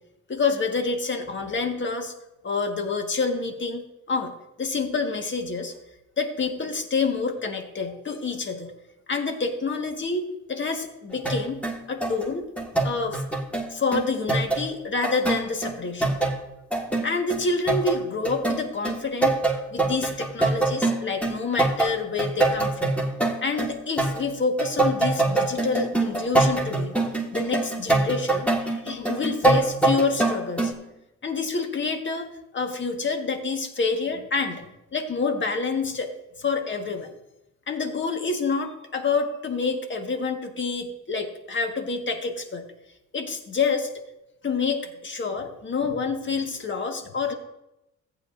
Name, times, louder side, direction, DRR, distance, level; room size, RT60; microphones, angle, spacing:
voice 1, 0.3-2.1 2.4-4.3 4.6-5.7 6.2-8.7 9.1-11.6 11.9-12.5 12.8-13.2 13.7-16.2 17.0-19.4 19.7-23.0 23.4-26.9 27.3-30.7 31.2-32.3 32.5-34.6 34.9-36.1 36.4-37.1 37.7-42.6 43.1-43.9 44.4-47.3, left 4 dB, 40° left, 4 dB, 1.6 m, -27 dB
sound 1, 11.1-14.7 15.0-16.4 16.7-24.3 24.6-30.7, right 2 dB, 5° left, 1.8 m, -24 dB
14.5 x 9.0 x 2.6 m, 0.91 s
cardioid pair, 90°, 30 cm